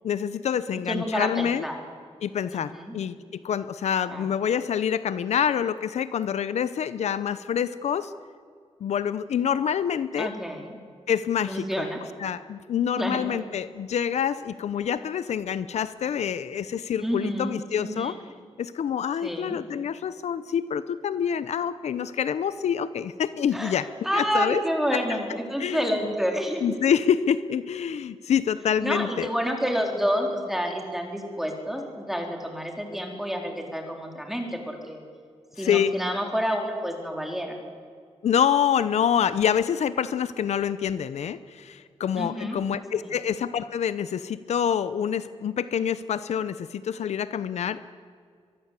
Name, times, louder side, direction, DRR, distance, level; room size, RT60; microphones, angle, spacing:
voice 1, 0.0-1.6 2.2-8.1 8.8-10.3 11.1-11.9 12.2-18.2 18.6-23.8 24.1-24.6 24.9-25.0 25.6-25.9 26.6-29.3 35.6-35.9 38.2-47.9, left 8 dB, 80° left, 14 dB, 0.8 m, -26 dB
voice 2, 0.9-1.8 2.5-3.0 4.1-4.3 10.2-10.8 11.5-12.0 13.0-13.3 17.0-18.1 19.2-19.6 23.5-26.8 28.8-35.0 35.6-37.5 42.2-42.6, equal, 5° right, 2 dB, 4.1 m, -29 dB
23.5 x 23.0 x 8.4 m, 2.2 s
wide cardioid pair, 145°, 11 cm